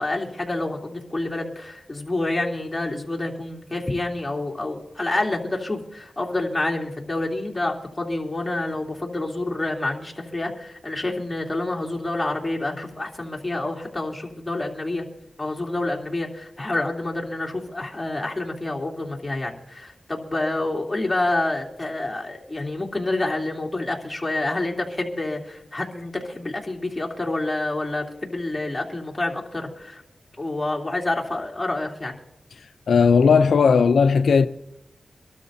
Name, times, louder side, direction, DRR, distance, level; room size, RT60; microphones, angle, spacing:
voice 1, 0.0-15.0 15.4-30.0 30.4-32.2, left 2 dB, 20° left, 3.1 m, -28 dB
voice 2, 32.9-34.5, left 5 dB, 80° left, 0.4 m, -16 dB
25.0 x 12.5 x 2.7 m
cardioid pair, 60°, 0 cm